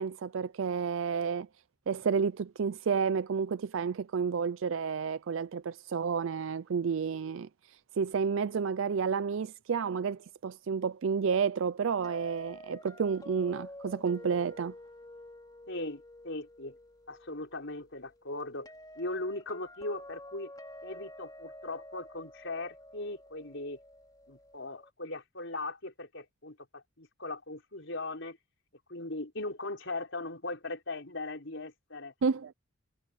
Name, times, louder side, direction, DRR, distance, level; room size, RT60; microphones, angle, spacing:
voice 1, 0.0-1.5 1.9-14.7 32.2-32.5, right 6 dB, 70° right, 0.4 m, -31 dB
sound 1, 12.0-24.9, left 1 dB, 20° left, 2.9 m, -50 dB
voice 2, 15.7-16.8 17.1-18.7 18.9-20.5 20.8-23.8 24.3-28.4 28.9-32.1, left 2 dB, 65° left, 5.0 m, -39 dB
head